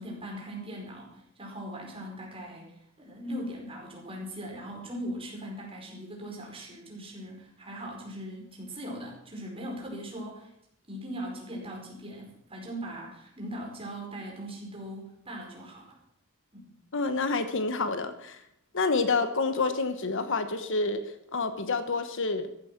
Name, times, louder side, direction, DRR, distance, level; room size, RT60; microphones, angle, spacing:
voice 1, 0.0-10.5 10.9-16.0 16.5-16.7, equal, 25° right, -1 dB, 5.0 m, -40 dB
voice 2, 16.9-18.4 18.7-21.0 21.3-22.5, left 3 dB, 60° left, 10 dB, 1.2 m, -28 dB
14.5 x 12.0 x 6.0 m, 0.74 s
head